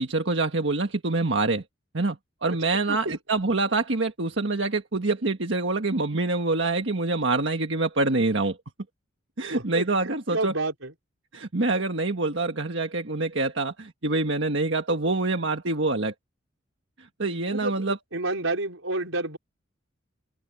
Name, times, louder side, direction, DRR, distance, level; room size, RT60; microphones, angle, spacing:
voice 1, 0.0-1.6 1.9-8.6 9.4-10.5 11.3-16.1 17.0-18.0, right 3 dB, 65° right, 1.6 m, -26 dB
voice 2, 2.6-3.2 9.5-9.9 10.3-10.9 17.5-19.4, right 2 dB, 85° right, 5.1 m, -30 dB
head